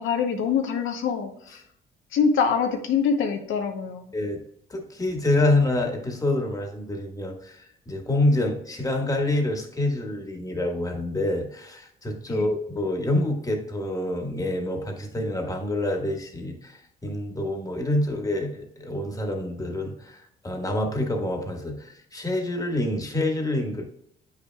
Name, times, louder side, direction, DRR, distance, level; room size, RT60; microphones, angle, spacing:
voice 1, 0.0-1.6 2.1-4.1 12.3-12.5, left 6 dB, 80° left, 4 dB, 0.8 m, -25 dB
voice 2, 4.7-23.8, left 1 dB, 15° left, 2 dB, 1.5 m, -27 dB
8.0 x 5.8 x 2.2 m, 0.73 s
cardioid pair, 90°, 20 cm